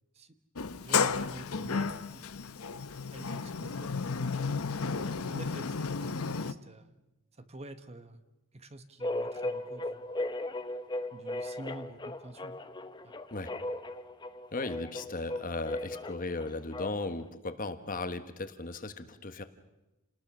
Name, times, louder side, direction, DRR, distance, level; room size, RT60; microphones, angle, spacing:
Sliding door, 0.6-6.5, left 5 dB, 75° left, 0.8 m, -33 dB
voice 1, 0.8-2.5 3.1-4.3 4.9-6.9 7.3-8.2 8.5-10.1 11.1-12.6 13.0-13.1, right 1 dB, 30° right, 10 dB, 1.1 m, -47 dB
sound 1, 9.0-17.2, left 1 dB, 20° left, 0.9 m, -37 dB
voice 2, 14.5-19.4, left 2 dB, 40° left, 10 dB, 1.3 m, -36 dB
29.0 x 19.5 x 6.2 m, 1.0 s
head